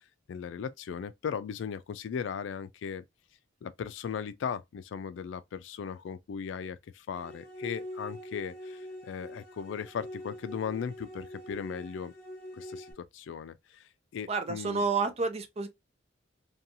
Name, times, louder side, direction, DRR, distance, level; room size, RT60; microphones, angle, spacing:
voice 1, 0.3-3.0 3.6-12.1 12.5-14.8, left 7 dB, 80° left, 0.3 m, -37 dB
sound 1, 7.2-12.9, left 1 dB, 50° left, 0.9 m, -44 dB
voice 2, 14.3-15.7, right 4 dB, 35° right, 0.4 m, -29 dB
2.7 x 2.3 x 2.6 m
head